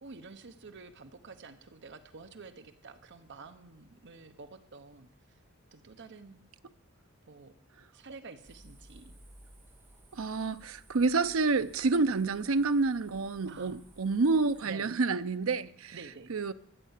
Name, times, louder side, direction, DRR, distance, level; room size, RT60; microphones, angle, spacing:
voice 1, 0.0-5.4 5.7-6.4 7.3-7.5 7.9-9.1 13.5-13.8 14.6-14.9 15.9-16.3, right 4 dB, 60° right, 1.0 m, -49 dB
sound 1, 8.4-14.6, right 1 dB, 10° right, 2.1 m, -57 dB
voice 2, 10.1-16.0 16.3-16.5, right 3 dB, 75° right, 0.6 m, -28 dB
13.0 x 9.1 x 8.2 m
head